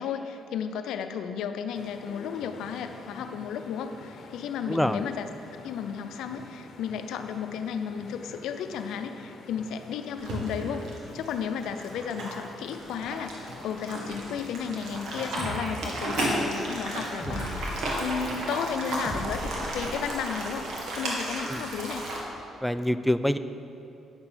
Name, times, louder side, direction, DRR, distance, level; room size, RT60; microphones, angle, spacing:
voice 1, 0.0-5.3 5.5-10.8 11.1-20.7 20.9-22.0, left 7 dB, 85° left, 8 dB, 0.6 m, -33 dB
sound 1, 1.7-20.0, left 4 dB, 65° left, 0.9 m, -47 dB
voice 2, 4.7-5.0 17.3-17.4 21.4-21.6 22.6-23.4, equal, 5° left, 11 dB, 0.4 m, -26 dB
sound 2, 10.2-22.2, right 1 dB, 80° right, 1.9 m, -33 dB
sound 3, 15.4-15.6 17.2-17.7 19.0-20.2, equal, 30° right, 2.5 m, -36 dB
9.5 x 6.8 x 5.7 m, 2.7 s
cardioid pair, 90°, 0 cm